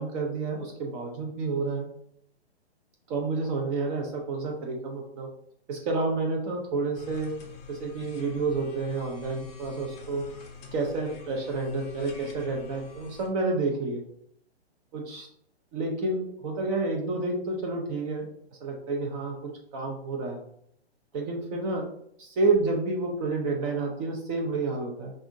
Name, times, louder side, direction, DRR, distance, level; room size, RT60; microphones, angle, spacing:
voice 1, 0.0-1.9 3.1-5.3 5.7-7.3 7.7-10.3 10.7-14.0 14.9-15.3 15.7-18.3 18.6-20.4 21.1-21.9 22.2-25.1, right 3 dB, 30° right, 0 dB, 0.7 m, -29 dB
sound 1, 6.9-13.3, left 4 dB, 20° left, 0.6 m, -46 dB
5.5 x 2.5 x 2.6 m, 0.69 s
hypercardioid pair, 130°, 32 cm